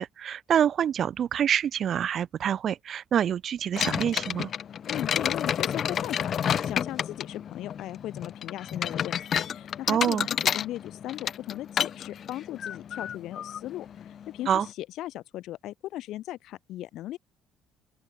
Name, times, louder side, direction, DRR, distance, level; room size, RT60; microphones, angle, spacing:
voice 1, 0.0-4.5 9.9-10.3 14.5-14.7, right 9 dB, 55° right, 2.4 m, -26 dB
sound 1, 3.7-14.7, left 8 dB, 55° left, 3.6 m, -31 dB
voice 2, 4.9-17.2, left 14 dB, 75° left, 2.1 m, -38 dB
open air
supercardioid pair, 85°, 0 cm